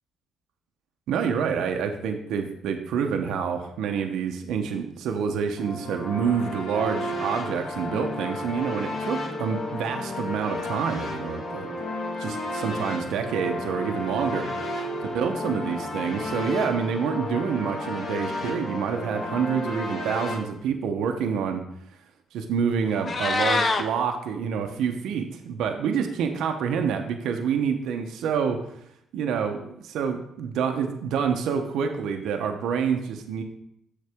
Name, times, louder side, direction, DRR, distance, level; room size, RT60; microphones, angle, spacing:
voice 1, 1.1-11.7 12.2-14.5 15.1-21.6 22.3-28.6 29.1-33.4, right 7 dB, 85° right, 5 dB, 0.7 m, -27 dB
sound 1, 5.6-20.3, left 1 dB, 70° left, 2.6 m, -32 dB
Meow, 22.9-23.8, left 3 dB, 40° left, 0.7 m, -24 dB
7.4 x 6.6 x 3.5 m, 0.76 s
cardioid pair, 90°, 0 cm